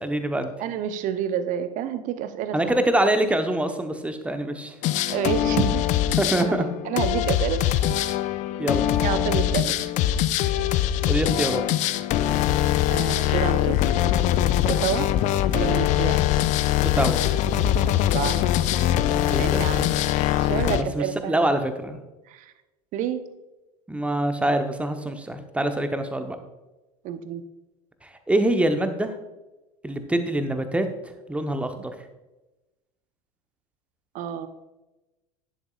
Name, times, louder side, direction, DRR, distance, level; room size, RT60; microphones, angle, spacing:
voice 1, 0.0-0.5 2.5-4.7 6.2-6.7 8.6-8.9 11.0-11.6 16.8-17.2 19.2-19.8 20.7-22.0 23.9-26.4 28.0-29.1 29.8-30.9 31.3-31.9, right 1 dB, 5° right, 7 dB, 1.0 m, -25 dB
voice 2, 0.6-2.8 5.1-5.9 6.4-7.9 9.0-9.7 12.9-13.8 14.7-15.1 15.5-16.2 18.1-18.6 19.4-19.9 20.4-21.5 22.3-22.4 22.9-23.2 27.0-27.4 34.1-34.5, right 9 dB, 40° right, 11 dB, 0.9 m, -29 dB
sound 1, 4.8-20.8, left 12 dB, 40° left, 0.5 m, -22 dB
11.0 x 11.0 x 2.5 m, 1.1 s
figure-of-eight pair, 80°, 20 cm